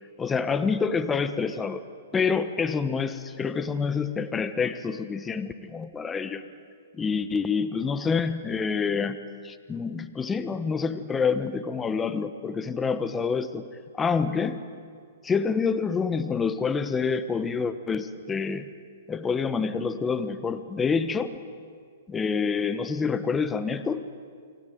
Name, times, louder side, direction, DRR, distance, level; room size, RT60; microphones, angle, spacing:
voice 1, 0.2-1.8 2.1-6.4 6.9-9.2 9.4-13.6 13.9-14.6 15.2-18.7 19.1-21.3 22.1-24.0, left 5 dB, 15° left, 11 dB, 1.2 m, -27 dB
29.5 x 21.5 x 9.4 m, 2.1 s
hypercardioid pair, 135°, 0 cm